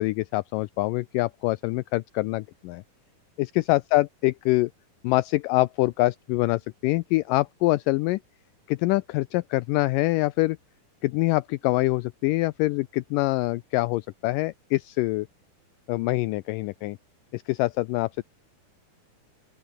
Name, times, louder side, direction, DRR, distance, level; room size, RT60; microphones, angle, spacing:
voice 1, 0.0-2.8 3.4-4.7 5.0-8.2 8.7-10.6 11.0-15.3 15.9-17.0 17.3-18.2, left 20 dB, 80° left, 2.0 m, -25 dB
open air
omnidirectional pair, 4.1 m